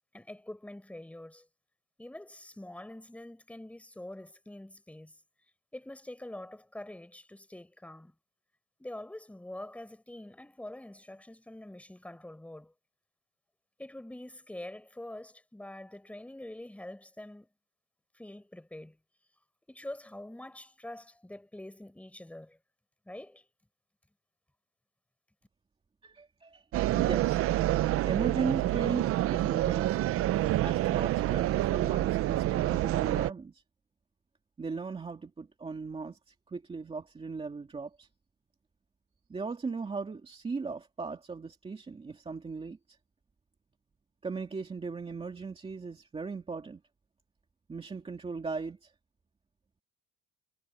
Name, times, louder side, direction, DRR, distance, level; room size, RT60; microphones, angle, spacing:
voice 1, 0.1-1.5 2.0-5.2 5.7-8.1 8.8-12.7 13.8-17.5 18.1-19.0 19.7-22.6 23.1-23.5, left 1 dB, 5° left, 5.8 m, -45 dB
voice 2, 26.0-26.6 26.9-27.4 27.7-30.0 30.6-33.6 34.6-38.1 39.3-43.0 44.2-46.8 47.7-48.9, right 4 dB, 15° right, 2.4 m, -38 dB
sound 1, 26.7-33.3, right 14 dB, 40° right, 0.5 m, -27 dB
cardioid pair, 165°, 35 cm